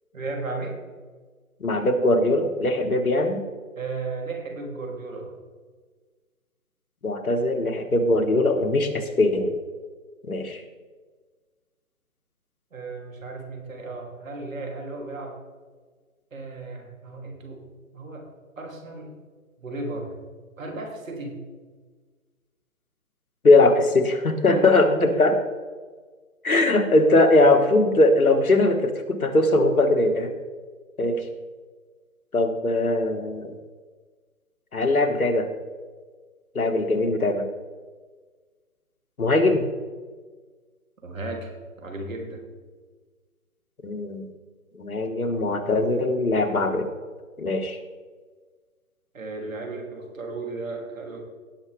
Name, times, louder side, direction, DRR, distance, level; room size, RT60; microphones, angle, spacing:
voice 1, 0.1-0.8 3.8-5.3 12.7-15.4 16.3-17.6 17.9-18.3 18.6-19.2 19.6-20.1 20.6-21.4 24.5-25.2 41.0-41.5 41.8-42.4 49.1-51.2, right 2 dB, 65° right, 1 dB, 3.0 m, -34 dB
voice 2, 1.6-3.4 7.0-9.5 10.3-10.6 23.4-25.3 26.4-30.3 31.0-31.2 32.3-33.5 34.7-35.5 36.6-37.4 39.2-39.7 43.8-44.3 44.8-46.9 47.4-47.8, left 2 dB, 80° left, 6 dB, 1.7 m, -20 dB
18.0 x 6.3 x 3.4 m, 1.4 s
figure-of-eight pair, 150°, 42 cm